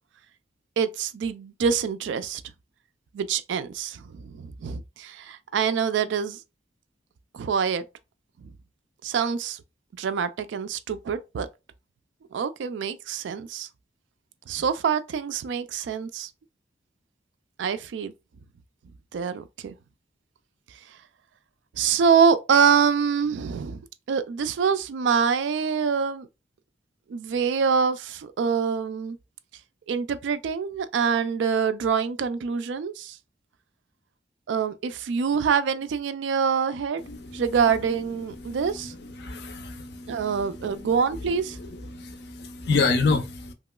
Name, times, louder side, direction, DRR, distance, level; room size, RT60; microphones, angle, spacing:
voice 1, 0.8-2.4 3.1-6.4 7.3-7.8 8.4-8.5 9.0-9.6 10.0-11.5 12.3-13.7 14.5-16.3 17.6-18.1 19.1-19.7 21.8-23.8 24.1-26.3 27.1-29.2 29.9-33.2 34.5-37.0 37.3-38.9 40.1-41.6, right 6 dB, 70° right, 0.3 m, -25 dB
voice 2, 39.2-40.2 41.9-43.5, left 4 dB, 60° left, 0.5 m, -26 dB
3.0 x 2.9 x 2.2 m
head